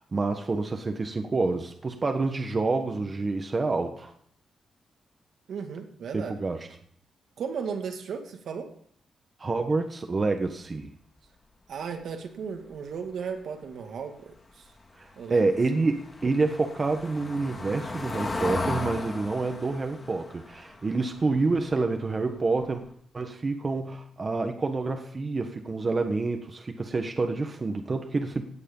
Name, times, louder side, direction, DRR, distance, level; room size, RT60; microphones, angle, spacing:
voice 1, 0.0-4.1 6.1-6.7 9.4-10.9 15.0-22.8 23.1-28.5, right 3 dB, 30° right, 5 dB, 1.3 m, -28 dB
voice 2, 5.5-6.4 7.4-8.8 11.7-14.7 15.2-15.5, right 6 dB, 70° right, 4 dB, 2.3 m, -35 dB
Car passing by / Engine, 15.1-22.0 22.4-22.6 22.9-23.0, left 2 dB, 25° left, 2.8 m, -36 dB
16.5 x 9.7 x 5.5 m, 0.64 s
wide cardioid pair, 150°, 0 cm